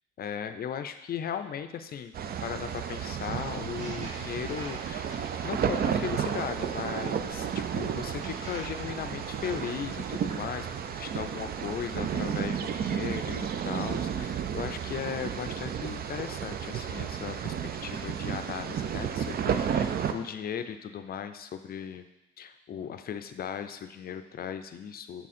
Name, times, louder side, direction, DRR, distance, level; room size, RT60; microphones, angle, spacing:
voice 1, 0.2-2.1 2.4-5.1 5.4-10.7 11.0-17.5 17.8-22.1 22.4-25.3, left 8 dB, 50° left, 9 dB, 0.5 m, -37 dB
sound 1, 2.1-20.1, right 8 dB, 50° right, 0.5 m, -32 dB
sound 2, 3.6-6.7 7.4-10.7, right 1 dB, 35° right, 1.9 m, -48 dB
7.1 x 3.7 x 4.2 m, 0.96 s
cardioid pair, 90°, 20 cm